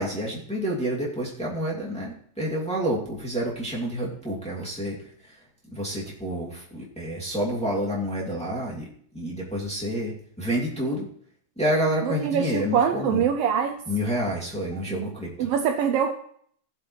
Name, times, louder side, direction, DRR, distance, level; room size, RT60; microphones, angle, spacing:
voice 1, 0.0-5.0 5.2-5.4 5.7-8.9 9.1-11.1 11.6-13.2 13.9-15.5, equal, ahead, -5 dB, 2.0 m, -28 dB
voice 2, 12.0-13.8 14.9-15.1 15.4-16.1, right 7 dB, 85° right, 6 dB, 1.3 m, -24 dB
17.5 x 7.6 x 3.2 m, 0.63 s
omnidirectional pair, 3.3 m